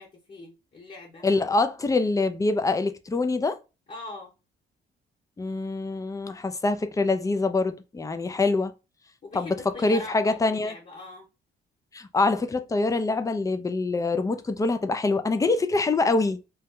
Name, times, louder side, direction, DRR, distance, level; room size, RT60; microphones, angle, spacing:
voice 1, 0.0-1.2 3.9-4.3 9.2-11.3, left 2 dB, 35° left, 1.0 m, -41 dB
voice 2, 1.2-3.6 5.4-8.7 9.3-9.6 9.8-10.7 11.9-16.4, left 3 dB, 15° left, 0.4 m, -25 dB
2.8 x 2.1 x 3.6 m
cardioid pair, 90°, 20 cm